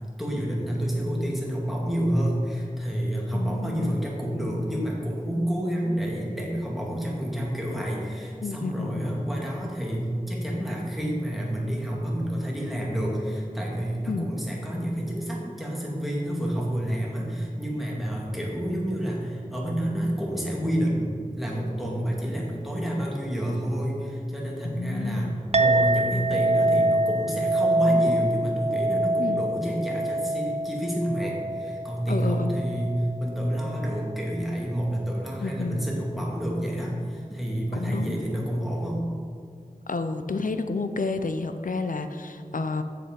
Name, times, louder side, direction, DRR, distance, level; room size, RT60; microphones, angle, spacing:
voice 1, 0.2-39.0, equal, ahead, -3 dB, 2.3 m, -29 dB
voice 2, 3.3-4.0 8.4-9.2 14.1-14.3 24.6-25.4 29.2-29.4 32.1-32.7 35.4-35.9 37.7-38.2 39.9-42.8, left 3 dB, 65° left, 8 dB, 0.6 m, -30 dB
Chink clink, 25.5-34.2, right 1 dB, 45° right, 0.4 m, -26 dB
7.8 x 6.9 x 5.2 m, 2.2 s
wide cardioid pair, 45°, 15 cm